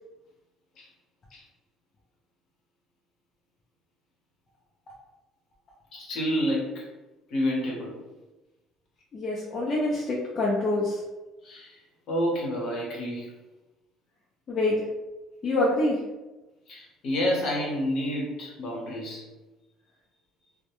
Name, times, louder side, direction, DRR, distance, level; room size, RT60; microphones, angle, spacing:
voice 1, 5.9-6.9 7.3-8.0 11.4-11.7 12.1-13.3 16.7-19.2, equal, 55° left, -3 dB, 0.8 m, -29 dB
voice 2, 9.1-11.0 14.5-14.8 15.4-16.0, left 2 dB, 30° left, -5 dB, 0.4 m, -25 dB
2.1 x 2.0 x 2.9 m, 1.1 s
cardioid pair, 160°, 0 cm